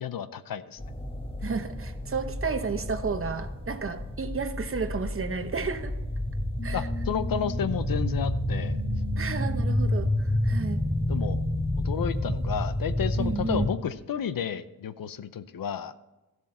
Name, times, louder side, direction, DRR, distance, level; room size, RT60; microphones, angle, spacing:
voice 1, 0.0-0.8 6.7-8.8 11.1-11.4 11.8-15.9, left 8 dB, 70° left, 13 dB, 0.7 m, -32 dB
sound 1, 0.8-13.7, left 1 dB, 15° left, 1.4 m, -30 dB
voice 2, 1.4-5.9 6.6-6.9 9.2-10.8 13.2-13.7, right 4 dB, 40° right, 8 dB, 0.9 m, -32 dB
sound 2, 6.6-12.5, left 2 dB, 45° left, 3.9 m, -35 dB
13.5 x 7.7 x 4.3 m, 1.1 s
wide cardioid pair, 110°, 35 cm